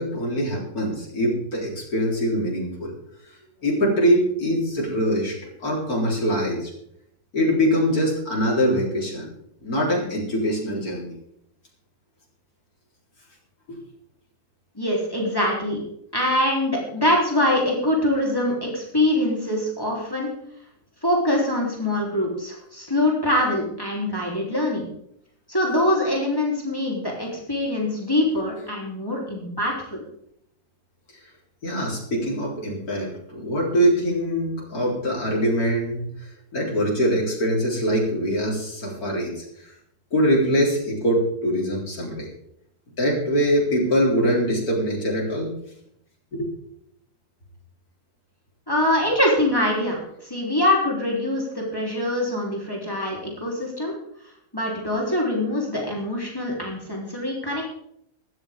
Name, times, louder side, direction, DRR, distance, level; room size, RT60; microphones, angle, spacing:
voice 1, 0.0-2.9 3.6-5.4 5.6-6.7 7.3-9.3 9.6-11.1 13.7-13.8 31.6-39.4 40.1-42.3 43.0-45.5 46.3-46.5, equal, 65° left, -2 dB, 4.6 m, -23 dB
voice 2, 14.8-15.8 16.1-20.3 21.0-24.9 25.5-30.0 48.7-53.9 54.5-57.6, left 1 dB, 15° left, -2 dB, 3.6 m, -24 dB
15.5 x 13.0 x 3.7 m, 0.72 s
omnidirectional pair, 1.7 m